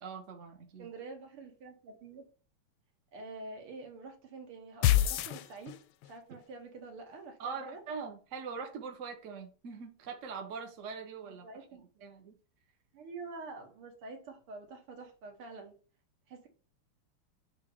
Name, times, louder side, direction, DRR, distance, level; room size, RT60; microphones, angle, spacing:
voice 1, 0.0-0.9 7.4-11.5 12.0-12.3, right 5 dB, 45° right, 1.1 m, -42 dB
voice 2, 0.8-2.3 3.1-5.8 6.0-7.8 11.3-12.0 12.9-15.7 16.3-16.5, right 3 dB, 80° right, 2.3 m, -47 dB
sound 1, 4.8-6.1, left 12 dB, 85° left, 1.5 m, -27 dB
6.9 x 2.9 x 4.9 m
omnidirectional pair, 2.4 m